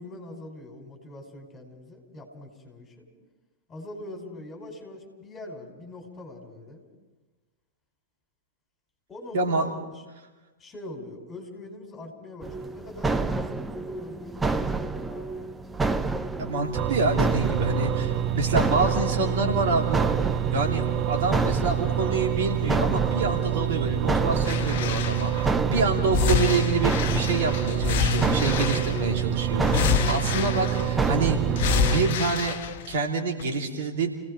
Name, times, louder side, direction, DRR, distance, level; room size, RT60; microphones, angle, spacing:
voice 1, 0.0-3.1 3.7-6.8 9.1-10.0 10.6-15.5, left 1 dB, 20° left, 2 dB, 5.2 m, -42 dB
voice 2, 9.3-9.6 16.4-20.1 20.5-31.4 31.9-32.6 32.9-34.1, right 3 dB, 55° right, 1 dB, 3.1 m, -27 dB
sound 1, 12.4-32.3, right 3 dB, 10° right, 0.8 m, -30 dB
sound 2, 16.7-32.2, right 11 dB, 35° right, 1.3 m, -27 dB
sound 3, 24.4-25.5 26.1-29.2 29.6-31.1 31.6-33.0 33.4-33.5, left 8 dB, 50° left, 1.0 m, -27 dB
30.0 x 18.0 x 5.0 m, 1.2 s
figure-of-eight pair, 100°, 0 cm